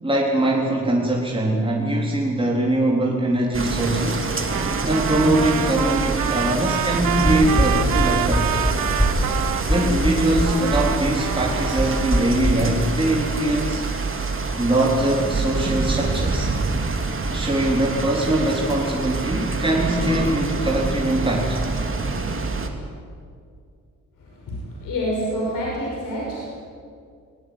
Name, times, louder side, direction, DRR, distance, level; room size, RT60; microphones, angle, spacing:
voice 1, 0.0-4.3 4.8-8.5 9.7-13.8 14.6-16.5 17.3-21.6, right 1 dB, 15° right, -3 dB, 4.0 m, -22 dB
sound 1, 3.5-22.7, right 3 dB, 40° right, 2.9 m, -26 dB
Trumpet, 4.4-9.9 10.4-12.4, right 13 dB, 85° right, 0.7 m, -28 dB
sound 2, 7.2-12.5, equal, 10° left, 5.9 m, -22 dB
voice 2, 24.8-26.6, equal, 80° left, -3 dB, 6.0 m, -26 dB
19.0 x 19.0 x 10.0 m, 2.2 s
cardioid pair, 60°, 32 cm